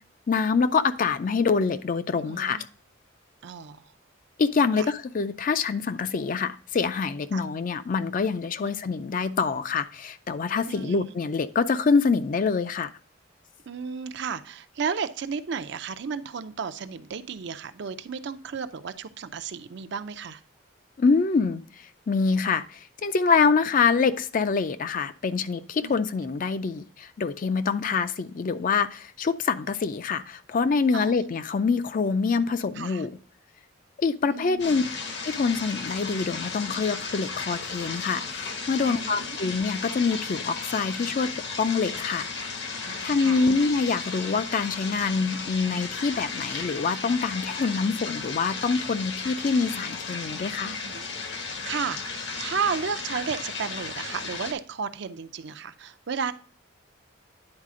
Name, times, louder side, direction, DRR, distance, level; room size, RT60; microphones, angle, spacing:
voice 1, 0.3-2.6 4.4-12.9 21.0-21.6 22.1-33.1 34.0-34.8 35.3-41.3 41.6-42.3 43.0-50.7, left 5 dB, 40° left, 0.4 m, -25 dB
voice 2, 2.1-2.6 3.4-3.9 4.8-4.9 7.3-7.4 8.6-8.7 10.7-11.1 13.7-20.4 25.8-26.0 27.9-28.0 30.9-31.1 32.7-33.1 34.2-34.9 38.7-39.4 42.8-43.4 50.6-51.1 51.3-56.3, right 6 dB, 60° right, 0.5 m, -33 dB
sound 1, 34.6-54.5, left 4 dB, 60° left, 1.0 m, -35 dB
9.8 x 4.1 x 3.7 m
head